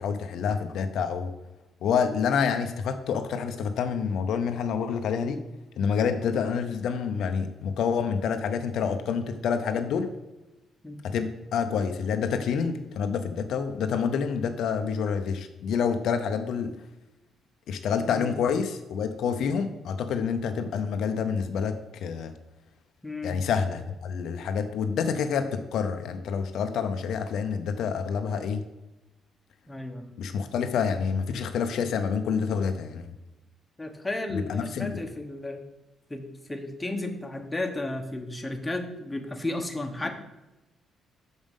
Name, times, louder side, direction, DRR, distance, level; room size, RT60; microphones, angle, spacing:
voice 1, 0.0-1.3 1.8-5.4 5.8-10.1 11.0-16.7 17.7-22.3 23.2-28.6 30.2-33.1 34.3-35.0, left 6 dB, 75° left, 7 dB, 0.6 m, -28 dB
voice 2, 23.0-23.4 29.7-30.0 33.8-35.6 36.1-40.1, left 2 dB, 15° left, 4 dB, 1.0 m, -33 dB
6.2 x 5.2 x 5.4 m, 1.0 s
cardioid pair, 90°, 0 cm